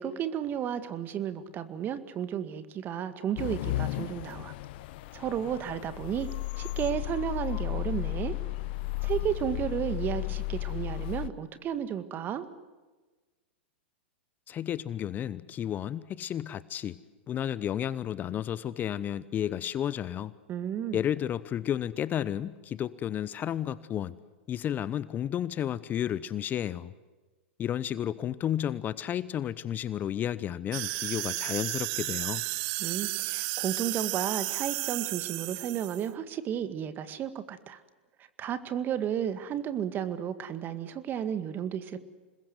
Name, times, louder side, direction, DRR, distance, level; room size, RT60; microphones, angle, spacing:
voice 1, 0.0-4.5 5.1-6.3 6.6-8.3 9.0-12.5 20.5-21.0 32.8-37.8 38.4-42.0, right 9 dB, 30° right, 12 dB, 2.0 m, -33 dB
sound 1, 3.4-11.3, left 18 dB, 55° left, 0.9 m, -34 dB
voice 2, 14.5-17.0 17.3-20.3 20.9-24.2 24.5-26.9 27.6-32.4, left 10 dB, 30° left, 17 dB, 0.8 m, -32 dB
sound 2, 30.7-36.1, right 21 dB, 50° right, 0.9 m, -33 dB
27.0 x 21.0 x 8.0 m, 1.3 s
hypercardioid pair, 110°, 6 cm